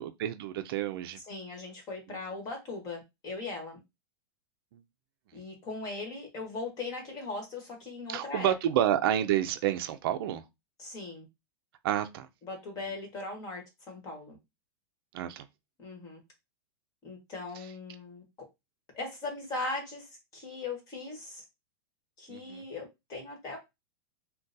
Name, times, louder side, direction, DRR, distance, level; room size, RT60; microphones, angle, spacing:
voice 1, 0.0-1.2 4.7-4.8 8.1-10.4 11.8-12.3 15.1-15.5 22.3-22.6, right 11 dB, 55° right, 0.4 m, -29 dB
voice 2, 1.2-3.8 5.3-8.8 10.8-11.2 12.4-14.4 15.8-16.2 17.0-18.2 18.9-21.4 22.2-23.6, left 3 dB, 25° left, 1.3 m, -39 dB
3.8 x 2.2 x 2.6 m
supercardioid pair, 155°, 14 cm